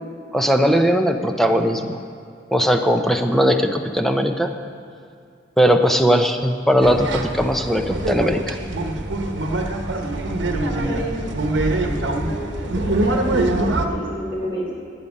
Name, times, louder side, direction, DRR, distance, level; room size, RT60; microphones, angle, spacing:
voice 1, 0.3-1.9 2.5-4.5 5.6-8.6, equal, ahead, 5 dB, 0.7 m, -18 dB
sound 1, 6.8-13.9, right 2 dB, 60° right, 1.2 m, -24 dB
voice 2, 10.6-11.3 11.8-14.8, equal, 30° left, -4 dB, 2.9 m, -31 dB
18.0 x 10.0 x 5.4 m, 2.3 s
head